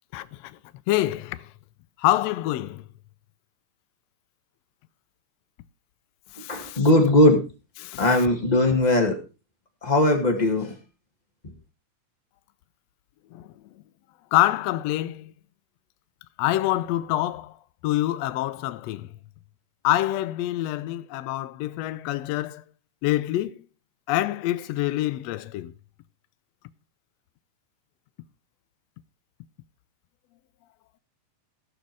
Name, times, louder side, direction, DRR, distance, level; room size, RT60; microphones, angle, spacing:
voice 1, 0.1-0.6 0.9-1.5 2.0-2.8 6.4-6.8 7.8-8.0 13.3-13.5 14.3-15.3 16.4-17.5 17.8-19.1 19.8-22.6 23.0-23.6 24.1-25.7, left 15 dB, 90° left, 1.4 m, -26 dB
voice 2, 6.5-7.4 8.0-9.1 9.8-10.7, left 1 dB, 20° left, 1.4 m, -19 dB
16.0 x 6.5 x 4.6 m
omnidirectional pair, 3.7 m